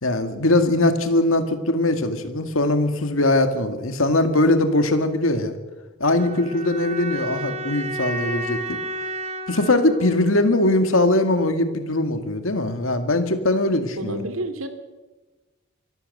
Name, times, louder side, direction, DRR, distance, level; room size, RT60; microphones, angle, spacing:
voice 1, 0.0-5.6 6.0-8.8 9.5-14.2, left 2 dB, 70° left, 8 dB, 2.1 m, -21 dB
sound 1, 6.1-11.2, right 1 dB, 35° right, 3.1 m, -32 dB
voice 2, 14.0-14.7, right 1 dB, 80° right, 8 dB, 2.7 m, -29 dB
24.0 x 14.0 x 8.0 m, 1.2 s
head